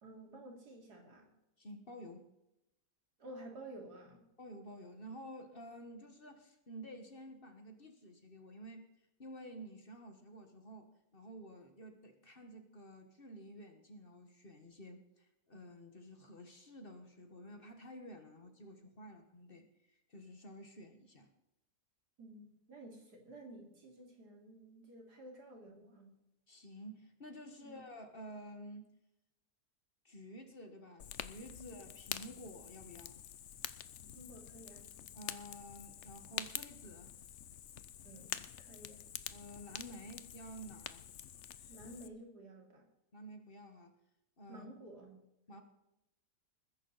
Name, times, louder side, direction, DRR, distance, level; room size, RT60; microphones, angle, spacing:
voice 1, 0.0-1.3 3.2-4.3 22.2-26.1 27.6-27.8 31.6-31.8 34.1-34.8 38.0-39.1 41.7-42.8 44.5-45.2 45.5-45.6, right 1 dB, 90° right, 1 dB, 3.4 m, -53 dB
voice 2, 1.6-2.3 4.4-8.9 9.2-21.3 26.5-28.9 30.0-33.2 35.1-37.1 39.3-41.0 43.1-43.9 44.4-44.7 45.5-45.6, equal, 35° left, 6 dB, 1.7 m, -51 dB
Fire, 31.0-42.1, left 10 dB, 60° left, 0.9 m, -47 dB
20.5 x 10.5 x 4.1 m, 0.88 s
omnidirectional pair, 1.7 m